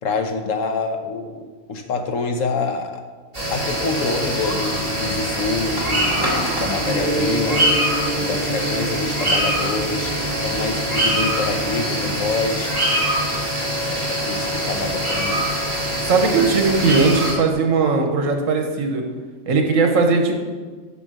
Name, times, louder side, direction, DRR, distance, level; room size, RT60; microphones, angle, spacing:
voice 1, 0.0-3.0 3.5-7.7 8.1-10.1 10.4-12.7 13.8-15.4, left 3 dB, 80° left, 6 dB, 1.3 m, -26 dB
sound 1, 3.3-17.3, equal, 25° right, 2.8 m, -23 dB
Gong, 6.9-17.5, right 1 dB, 55° right, 1.5 m, -31 dB
voice 2, 16.1-19.0 19.5-20.4, right 4 dB, 75° right, 4 dB, 1.4 m, -18 dB
7.1 x 5.9 x 6.2 m, 1.4 s
omnidirectional pair, 1.4 m